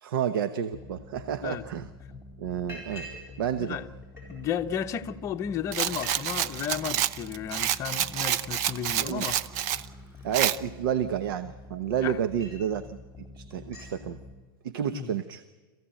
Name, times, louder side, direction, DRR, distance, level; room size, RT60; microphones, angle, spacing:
voice 1, 0.0-1.9 2.4-3.1 3.4-3.8 9.0-9.3 10.2-13.0 13.4-14.2 14.6-15.4, right 9 dB, 70° right, 1.0 m, -30 dB
sound 1, 0.7-14.3, left 2 dB, 5° left, 3.0 m, -47 dB
Liquid, 2.2-2.3 2.7-3.3 3.6-4.5 5.2-5.3 5.5-5.6 5.9-6.2 6.5-6.9 7.3-11.2 11.7-12.7 13.1-13.3 13.5-14.0, equal, 20° right, 7.9 m, -48 dB
voice 2, 4.3-9.4 12.0-12.2 14.9-15.2, left 8 dB, 25° left, 0.9 m, -33 dB
Rattle, 5.7-9.8 10.3-10.6, right 11 dB, 50° right, 0.7 m, -28 dB
27.0 x 15.5 x 9.0 m
supercardioid pair, 150°, 12 cm